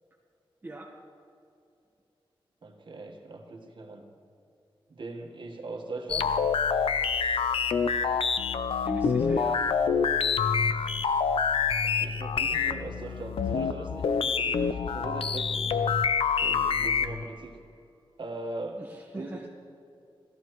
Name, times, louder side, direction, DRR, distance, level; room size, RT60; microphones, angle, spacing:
voice 1, 0.6-0.9 8.8-9.6 18.8-19.5, right 2 dB, 20° right, -3 dB, 1.0 m, -40 dB
voice 2, 2.6-4.0 4.9-6.4 11.8-15.8 16.4-17.6 18.2-18.8 19.1-19.4, right 2 dB, 60° right, 1 dB, 1.4 m, -40 dB
sound 1, 6.1-17.2, left 6 dB, 85° left, 0.5 m, -26 dB
17.0 x 13.5 x 3.1 m, 2.6 s
wide cardioid pair, 150°, 9 cm